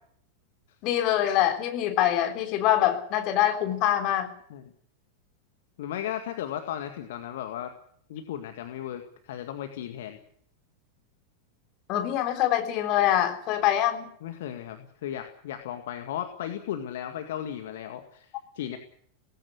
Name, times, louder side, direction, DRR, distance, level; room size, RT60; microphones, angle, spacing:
voice 1, 0.8-4.3 11.9-14.1, left 12 dB, 40° left, 6 dB, 3.5 m, -24 dB
voice 2, 5.8-7.7 8.1-10.2 14.2-18.3 18.6-18.8, left 10 dB, 55° left, 6 dB, 2.0 m, -35 dB
18.5 x 16.0 x 9.6 m, 0.64 s
figure-of-eight pair, 90°, 0 cm